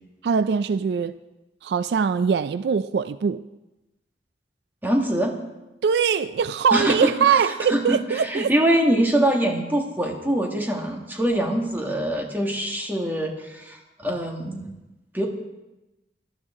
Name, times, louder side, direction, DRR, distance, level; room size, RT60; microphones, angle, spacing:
voice 1, 0.2-1.2 1.6-3.4 5.8-8.5, right 6 dB, 70° right, 13 dB, 0.3 m, -22 dB
voice 2, 4.8-5.4 6.7-7.1 7.7-14.7 15.1-15.3, right 1 dB, 10° right, 1 dB, 1.6 m, -24 dB
17.5 x 12.0 x 3.7 m, 1.0 s
head